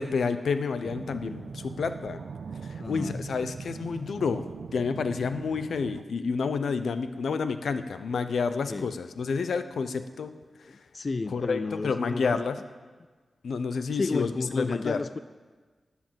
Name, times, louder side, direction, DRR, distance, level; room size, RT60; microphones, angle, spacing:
voice 1, 0.0-2.2 2.7-4.4 4.7-10.3 11.3-12.6 13.4-15.0, left 5 dB, 85° left, 10 dB, 0.8 m, -29 dB
sound 1, 0.8-6.0, right 5 dB, 75° right, 0.3 m, -41 dB
voice 2, 2.8-3.2 8.7-8.9 10.7-12.5 13.9-15.2, left 3 dB, 40° left, 14 dB, 0.3 m, -32 dB
18.0 x 7.1 x 7.6 m, 1.4 s
wide cardioid pair, 100°, 0 cm